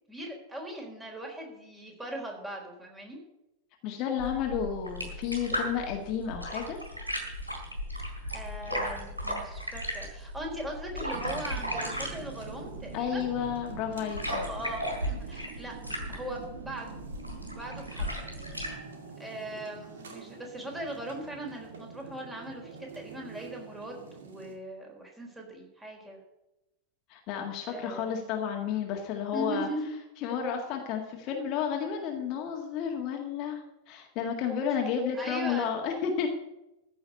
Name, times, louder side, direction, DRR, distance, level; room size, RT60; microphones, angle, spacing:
voice 1, 0.0-3.2 8.3-13.3 14.3-17.0 17.5-18.2 19.2-26.2 27.7-28.3 29.3-29.9 35.1-35.7, right 1 dB, 10° right, 1 dB, 4.2 m, -39 dB
voice 2, 3.8-6.8 12.9-14.4 27.1-29.7 30.2-36.3, left 7 dB, 40° left, 2 dB, 1.9 m, -32 dB
sound 1, 4.2-18.7, equal, 85° right, 4.1 m, -36 dB
sound 2, 11.1-24.5, right 5 dB, 65° right, 2.3 m, -46 dB
14.5 x 6.3 x 8.3 m, 0.92 s
figure-of-eight pair, 90°, 0 cm